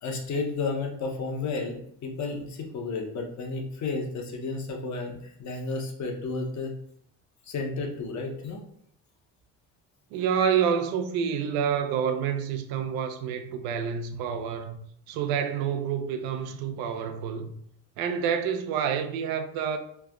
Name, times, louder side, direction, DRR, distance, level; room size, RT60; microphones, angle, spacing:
voice 1, 0.0-6.8 7.5-8.6, left 3 dB, 50° left, 0.9 m, -32 dB
voice 2, 10.1-14.8 15.1-17.5 18.0-19.8, right 7 dB, 85° right, 0.5 m, -28 dB
3.2 x 2.1 x 3.5 m
cardioid pair, 105°, 35 cm